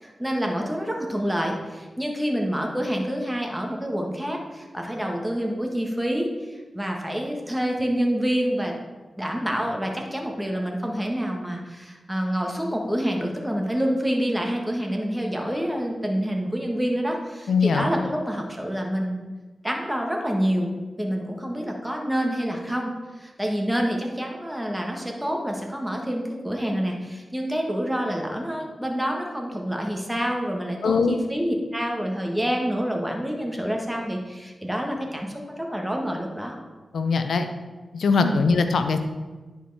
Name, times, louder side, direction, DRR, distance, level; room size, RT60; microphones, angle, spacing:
voice 1, 0.0-8.7 9.2-19.2 19.6-20.7 21.0-36.6 38.2-38.4, equal, 5° right, 1 dB, 1.6 m, -27 dB
voice 2, 17.5-17.9 30.8-31.2 36.9-37.5 37.9-39.0, left 4 dB, 85° left, 8 dB, 0.6 m, -21 dB
10.0 x 4.6 x 4.2 m, 1.3 s
cardioid pair, 55°, 0 cm